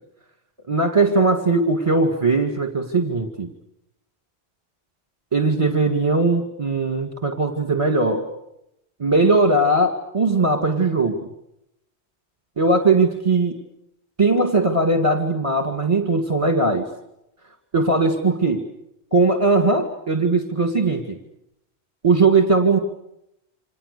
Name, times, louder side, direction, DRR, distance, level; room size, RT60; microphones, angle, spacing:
voice 1, 0.7-3.5 5.3-8.2 9.0-11.2 12.6-13.5 14.2-16.8 17.7-18.6 19.1-21.2 22.0-22.8, right 3 dB, 30° right, 6 dB, 2.3 m, -19 dB
29.0 x 26.0 x 6.8 m, 0.82 s
omnidirectional pair, 1.1 m